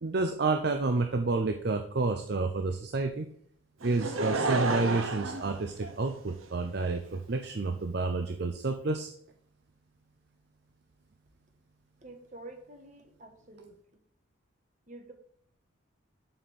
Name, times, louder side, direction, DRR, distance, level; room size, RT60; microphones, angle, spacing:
voice 1, 0.0-3.3 3.8-9.1, right 3 dB, 55° right, 6 dB, 0.5 m, -29 dB
Laughter / Crowd, 3.8-6.4 7.1-7.2, right 2 dB, 85° right, 1.0 m, -31 dB
voice 2, 12.0-13.8 14.9-15.1, right 2 dB, 35° right, 4 dB, 1.5 m, -48 dB
7.6 x 4.3 x 7.0 m, 0.65 s
head